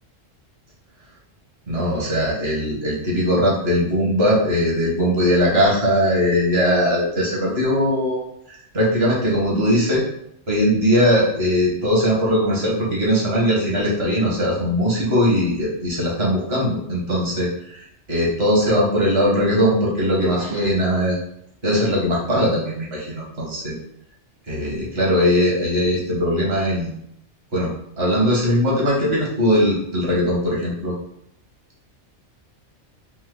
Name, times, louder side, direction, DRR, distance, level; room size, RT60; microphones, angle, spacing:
voice 1, 1.7-10.0 10.5-21.2 21.6-23.8 24.5-26.9 27.5-27.7 28.0-30.9, equal, 50° right, -5 dB, 1.8 m, -20 dB
4.3 x 2.8 x 3.9 m, 0.72 s
omnidirectional pair, 1.3 m